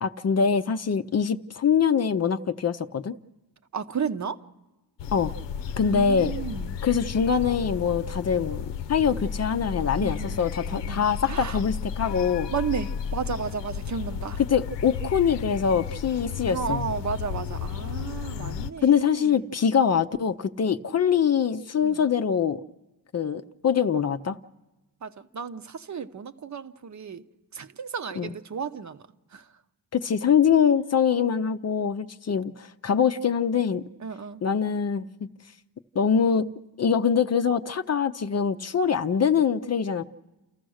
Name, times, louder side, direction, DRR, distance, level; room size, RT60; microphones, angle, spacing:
voice 1, 0.0-3.1 5.1-5.3 5.8-6.3 6.8-12.5 14.5-16.8 18.8-22.6 23.1-24.4 28.2-28.3 29.9-33.8 34.4-35.3 36.0-36.5 36.8-40.0, left 7 dB, 35° left, 0.6 m, -24 dB
voice 2, 3.7-4.4 5.8-6.8 10.0-11.6 12.5-14.4 16.4-19.6 21.8-22.1 25.0-27.2 27.5-29.0 29.3-29.5 34.0-34.4, right 6 dB, 40° right, 0.9 m, -33 dB
sound 1, 5.0-18.7, left 7 dB, 75° left, 0.8 m, -33 dB
29.5 x 14.5 x 6.4 m
cardioid pair, 115°, 43 cm